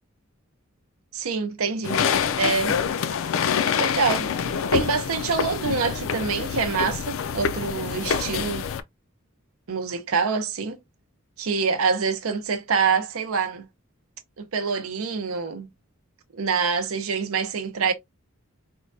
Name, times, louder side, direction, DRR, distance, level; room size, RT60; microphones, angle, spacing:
voice 1, 1.1-2.0 2.4-2.8 3.8-4.3 4.7-8.7 9.7-10.8 11.4-13.7 14.4-15.7 16.3-17.9, right 5 dB, 85° right, 0.6 m, -26 dB
sound 1, 1.8-8.8, left 7 dB, 65° left, 0.4 m, -26 dB
4.4 x 2.2 x 2.5 m
head